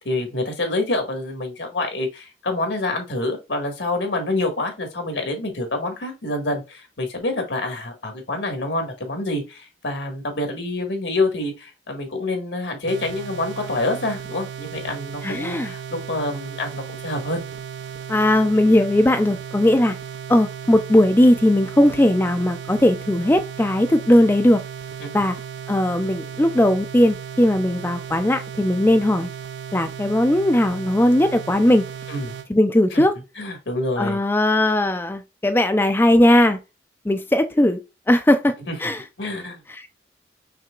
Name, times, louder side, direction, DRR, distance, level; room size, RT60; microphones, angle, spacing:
voice 1, 0.0-17.4 25.0-25.1 32.1-32.3 32.9-33.1 33.4-34.2 38.7-38.8 39.2-39.6, left 2 dB, 80° left, 1.6 m, -27 dB
sound 1, 12.9-32.5, right 8 dB, 75° right, 0.4 m, -35 dB
voice 2, 15.2-15.7 18.1-20.0 20.3-24.6 25.1-25.4 25.7-29.3 29.7-31.9 32.5-33.1 34.0-36.6 37.0-37.8 38.1-38.5 38.8-39.0 39.7-39.9, left 1 dB, 10° left, 0.3 m, -18 dB
5.8 x 3.4 x 2.3 m
head